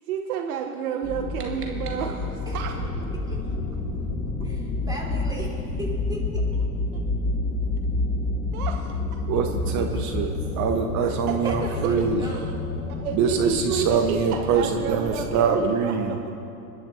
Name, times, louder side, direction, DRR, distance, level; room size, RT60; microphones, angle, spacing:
voice 1, 0.1-3.0 8.5-9.0 11.4-12.5 12.9-16.2, right 7 dB, 70° right, 4 dB, 1.1 m, -31 dB
sound 1, 0.9-2.6, right 4 dB, 90° right, 1.9 m, -46 dB
sound 2, 1.0-15.4, left 2 dB, 25° left, 1.7 m, -29 dB
voice 2, 4.4-6.2 9.8-9.9 11.4-12.5, right 1 dB, 10° right, -4 dB, 3.6 m, -38 dB
voice 3, 9.3-10.3 10.6-12.2 13.1-16.2, right 6 dB, 40° right, 5 dB, 1.1 m, -24 dB
29.5 x 11.0 x 2.8 m, 2.9 s
hypercardioid pair, 95°, 45 cm